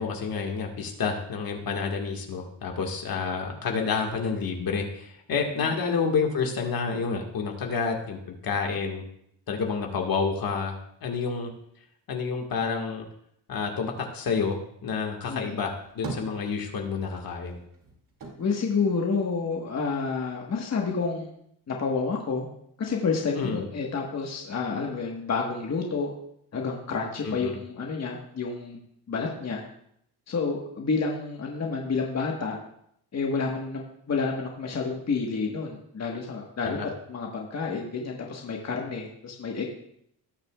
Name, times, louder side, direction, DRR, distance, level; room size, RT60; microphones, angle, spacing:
voice 1, 0.0-9.0 9.5-11.5 12.1-13.1 13.5-17.6 23.3-23.7 27.3-27.6 36.6-36.9, left 5 dB, 55° left, 2 dB, 1.8 m, -29 dB
voice 2, 15.3-15.6 18.4-21.3 21.7-22.5 22.8-26.1 26.5-28.8 29.1-29.6 30.3-32.6 33.1-39.6, left 4 dB, 40° left, 0 dB, 1.5 m, -29 dB
sound 1, 15.6-17.1 17.4-19.8 20.1-21.0, right 3 dB, 50° right, 2.5 m, -41 dB
18.0 x 6.7 x 2.4 m, 0.71 s
cardioid pair, 95°, 41 cm